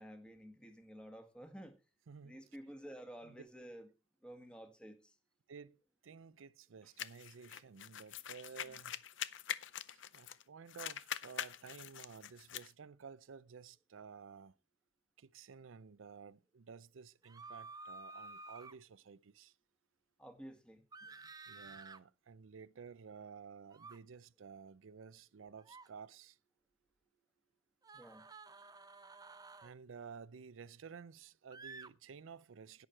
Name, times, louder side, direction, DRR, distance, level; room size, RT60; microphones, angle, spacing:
voice 1, 0.0-1.7 2.2-3.9 4.2-5.1 8.7-8.8 20.2-21.3 27.9-28.2, equal, 5° left, 1.6 m, -52 dB
voice 2, 2.1-2.4 3.2-3.4 5.5-8.9 9.2-9.3 9.9-14.6 15.2-19.5 21.5-26.4 29.6-32.9, right 6 dB, 90° right, 0.5 m, -53 dB
sound 1, 7.0-10.4 10.7-12.7, left 10 dB, 70° left, 0.6 m, -44 dB
sound 2, 17.2-18.8 20.9-22.0 23.7-24.0 25.6-25.9 27.8-29.7 31.5-31.9, right 3 dB, 20° right, 0.6 m, -52 dB
11.0 x 9.2 x 4.5 m
head